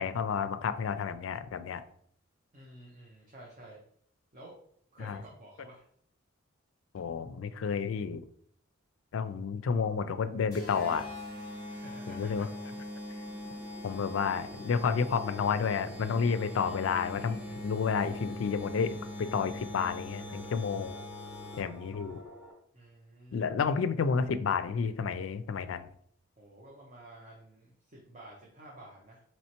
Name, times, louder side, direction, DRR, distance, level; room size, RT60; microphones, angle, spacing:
voice 1, 0.0-1.8 5.0-5.2 6.9-8.2 9.1-11.1 12.1-12.5 13.8-21.0 21.6-22.2 23.3-25.9, left 6 dB, 75° left, 11 dB, 0.3 m, -31 dB
voice 2, 2.5-3.8 4.3-4.5 4.9-5.9 11.7-12.4 22.7-23.5 26.4-29.2, right 1 dB, 35° right, -3 dB, 0.7 m, -51 dB
sound 1, 10.5-21.9, left 1 dB, 20° left, 1.3 m, -42 dB
sound 2, 13.0-22.5, equal, ahead, 1.0 m, -50 dB
4.3 x 3.1 x 2.9 m, 0.62 s
head